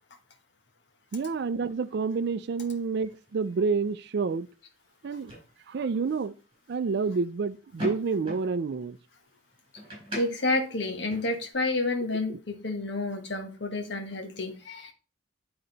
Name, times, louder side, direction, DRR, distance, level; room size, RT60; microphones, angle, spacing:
sound 1, 1.1-11.5, equal, 25° right, 4.3 m, -45 dB
voice 1, 1.1-4.5 5.0-5.3 5.7-6.3 6.7-9.0 12.3-12.4, right 4 dB, 55° right, 0.4 m, -29 dB
voice 2, 10.1-14.9, left 2 dB, 60° left, 1.2 m, -30 dB
9.4 x 3.9 x 3.9 m
head